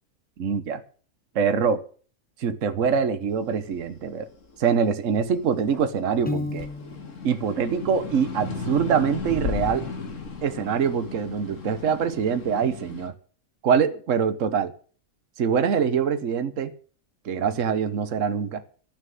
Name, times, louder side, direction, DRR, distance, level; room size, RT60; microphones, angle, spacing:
voice 1, 0.4-0.8 1.3-1.8 2.4-4.3 4.6-6.7 7.2-9.9 10.4-13.1 13.6-14.7 15.4-16.7 17.2-18.6, right 7 dB, 70° right, 11 dB, 1.4 m, -24 dB
sound 1, 3.5-6.0 6.4-13.1, left 5 dB, 65° left, 2.1 m, -35 dB
Piano, 6.3-7.2, left 3 dB, 5° left, 1.0 m, -31 dB
13.5 x 6.6 x 9.1 m, 0.43 s
omnidirectional pair, 1.4 m